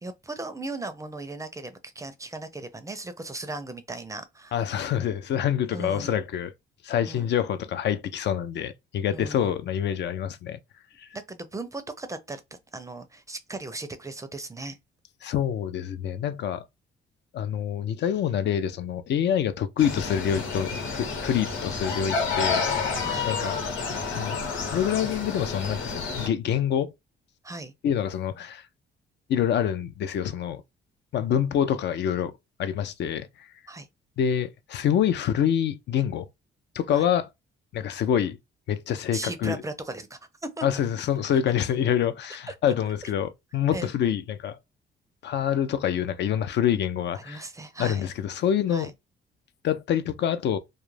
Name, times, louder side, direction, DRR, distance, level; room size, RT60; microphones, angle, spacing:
voice 1, 0.0-4.5 5.7-6.1 7.1-7.3 9.1-9.5 11.1-12.4 12.7-14.8 23.0-23.3 27.4-27.7 33.7-33.9 36.9-37.0 39.1-40.6 42.5-42.6 43.7-43.9 47.2-48.1 48.7-48.9, right 2 dB, 15° right, 0.4 m, -37 dB
voice 2, 4.5-6.5 6.8-10.6 11.0-11.1 15.2-16.7 17.3-22.7 23.3-23.6 24.1-24.4 24.7-26.9 27.8-28.7 29.3-30.6 31.1-32.3 32.6-33.5 34.2-36.3 36.7-37.3 37.7-38.4 38.7-39.6 40.6-44.6 45.2-47.4 47.8-48.9 49.6-50.6, left 9 dB, 60° left, 0.4 m, -26 dB
sound 1, 19.8-26.3, left 4 dB, 80° left, 1.1 m, -29 dB
2.3 x 2.1 x 3.1 m
cardioid pair, 90°, 20 cm